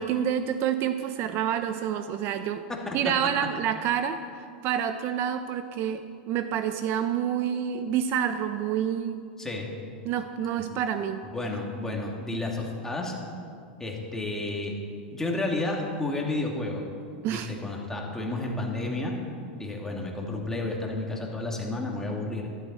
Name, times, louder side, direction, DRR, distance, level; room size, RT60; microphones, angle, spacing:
voice 1, 0.0-2.6 2.9-9.2 10.0-11.2 17.2-17.5, right 9 dB, 45° right, 9 dB, 0.6 m, -28 dB
voice 2, 2.7-3.1 9.4-9.7 10.6-10.7 11.3-13.2 13.8-14.8 15.1-16.8 17.3-19.1 19.5-22.5, left 2 dB, 10° left, -1 dB, 2.3 m, -31 dB
13.0 x 12.0 x 4.3 m, 2.3 s
hypercardioid pair, 110°, 6 cm